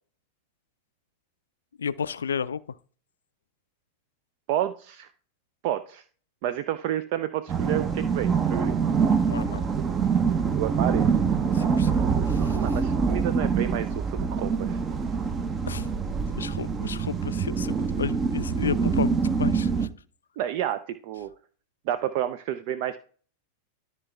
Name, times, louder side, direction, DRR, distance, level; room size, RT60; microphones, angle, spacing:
voice 1, 1.8-2.6 9.3-9.6 11.5-11.9 12.3-12.6 15.6-15.9 16.3-19.9, left 6 dB, 70° left, 0.4 m, -32 dB
voice 2, 4.5-5.1 5.6-6.0 6.4-8.8 10.6-11.4 12.6-14.8 20.4-21.3 21.9-23.0, right 12 dB, 45° right, 0.5 m, -30 dB
sound 1, 7.5-19.9, right 6 dB, 25° right, 0.8 m, -25 dB
13.0 x 4.5 x 3.4 m
figure-of-eight pair, 90°, 0 cm